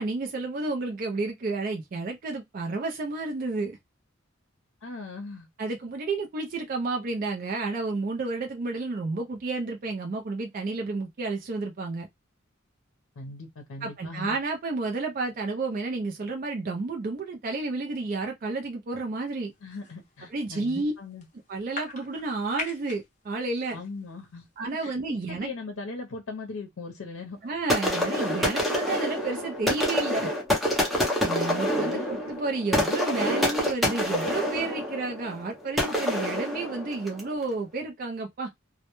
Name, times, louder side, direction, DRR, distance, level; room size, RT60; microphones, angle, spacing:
voice 1, 0.0-3.8 5.6-12.1 13.8-19.5 20.3-20.9 21.5-23.8 24.6-25.5 27.4-30.3 31.2-38.5, right 3 dB, 45° right, 0.4 m, -31 dB
voice 2, 4.8-5.5 13.2-14.4 19.6-21.3 23.7-24.5 24.8-27.4 31.7-32.2, left 3 dB, 80° left, 0.6 m, -39 dB
sound 1, 19.5-20.3 20.5-20.8 21.1-23.1 23.3-24.2 24.6-24.9, left 4 dB, 40° left, 0.7 m, -41 dB
sound 2, 27.7-37.3, left 1 dB, ahead, 0.6 m, -27 dB
2.1 x 2.1 x 2.9 m
head